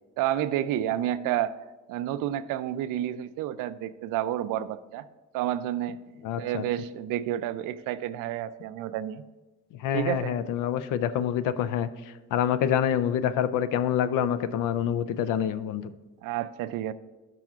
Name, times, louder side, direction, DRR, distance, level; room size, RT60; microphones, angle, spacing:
voice 1, 0.2-1.6 1.9-5.1 5.3-6.0 6.4-9.2 9.9-10.3 16.2-16.9, right 12 dB, 90° right, 13 dB, 0.5 m, -30 dB
voice 2, 6.2-6.6 9.8-15.9, left 9 dB, 85° left, 14 dB, 0.5 m, -27 dB
12.0 x 5.8 x 2.4 m, 1.2 s
cardioid pair, 125°, 31 cm